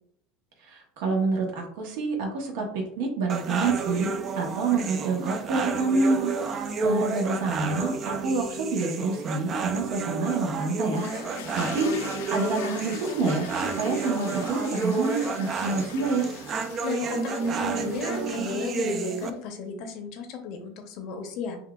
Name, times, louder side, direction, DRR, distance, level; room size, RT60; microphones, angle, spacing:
voice 1, 0.6-11.1 11.5-16.3, right 3 dB, 70° right, 1 dB, 0.9 m, -27 dB
sound 1, 3.3-19.3, right 4 dB, 30° right, 0.3 m, -31 dB
sound 2, 10.9-19.3, left 8 dB, 90° left, 0.4 m, -43 dB
voice 2, 16.8-21.6, left 5 dB, 55° left, 5 dB, 0.7 m, -34 dB
5.4 x 2.3 x 2.3 m, 0.68 s
supercardioid pair, 145°, 0 cm